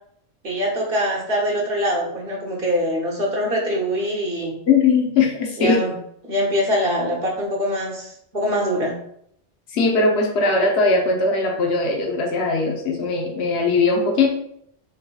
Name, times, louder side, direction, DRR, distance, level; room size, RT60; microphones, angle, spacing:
voice 1, 0.4-4.5 5.6-5.9 6.2-9.0, equal, 60° right, -2 dB, 1.1 m, -23 dB
voice 2, 4.7-5.8 9.7-14.3, left 3 dB, 75° left, 0 dB, 1.0 m, -19 dB
3.9 x 3.9 x 2.3 m, 0.69 s
omnidirectional pair, 1.1 m